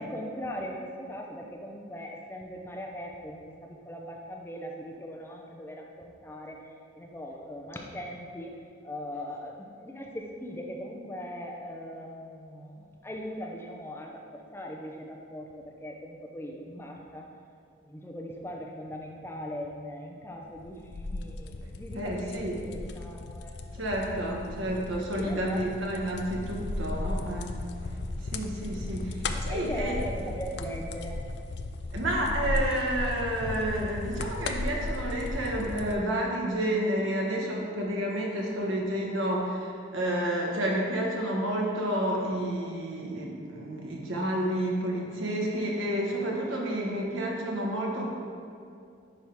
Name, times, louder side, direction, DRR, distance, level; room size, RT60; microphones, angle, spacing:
voice 1, 0.0-17.3 17.8-23.9 24.9-26.1 29.3-31.3, equal, 10° left, 0 dB, 0.6 m, -40 dB
sound 1, 20.5-36.0, left 2 dB, 60° left, 0.4 m, -35 dB
voice 2, 21.9-22.5 23.7-27.5 28.2-30.0 31.9-48.1, right 1 dB, 90° right, -2 dB, 1.4 m, -30 dB
10.5 x 3.6 x 4.5 m, 2.4 s
head